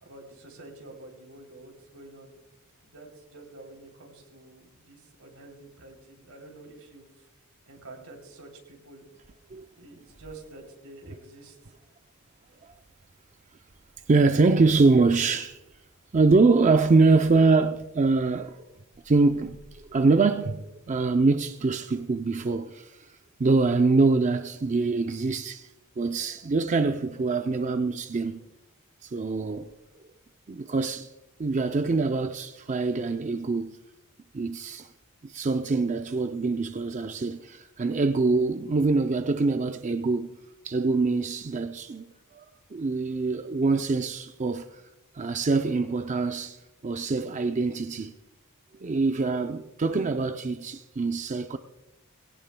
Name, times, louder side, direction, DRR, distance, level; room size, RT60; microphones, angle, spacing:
voice 1, 0.0-2.3 2.9-7.3 7.7-9.0 9.7-11.6, right 2 dB, 90° right, 3.2 m, -48 dB
voice 2, 14.1-15.6 16.1-18.7 19.0-23.1 23.4-25.7 26.0-28.4 29.0-29.7 30.5-31.1 31.4-33.8 34.3-34.9 35.2-40.4 40.6-42.0 42.3-42.5 42.7-44.8 45.1-48.1 48.8-51.6, right 3 dB, 35° right, 0.5 m, -24 dB
20.0 x 17.5 x 2.2 m
head